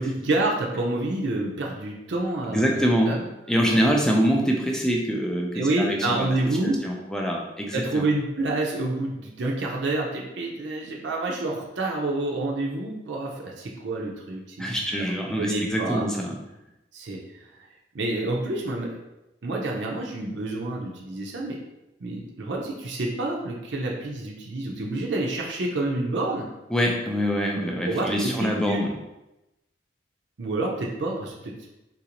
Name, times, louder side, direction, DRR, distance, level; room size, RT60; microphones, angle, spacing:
voice 1, 0.0-2.8 3.1-3.2 3.7-3.9 5.5-6.8 7.7-14.8 15.4-16.0 16.9-17.6 17.9-19.0 19.4-21.6 22.0-26.5 27.8-28.8 30.4-31.7, right 2 dB, 70° right, -1 dB, 0.5 m, -28 dB
voice 2, 2.5-6.6 6.8-8.0 14.6-16.4 26.7-29.0, equal, 5° left, -1 dB, 0.4 m, -25 dB
3.9 x 2.5 x 2.9 m, 0.96 s
head